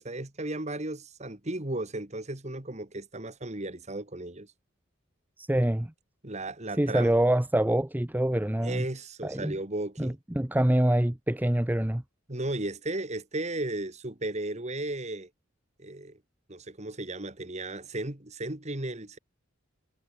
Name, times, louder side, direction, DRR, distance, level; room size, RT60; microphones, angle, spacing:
voice 1, 0.0-4.5 6.2-7.1 8.6-10.2 12.3-15.3 15.8-16.2 16.5-19.2, right 2 dB, 35° right, 2.3 m, -35 dB
voice 2, 5.4-5.9 6.8-8.9 9.2-9.5 10.0-12.0, right 1 dB, 10° right, 0.6 m, -25 dB
head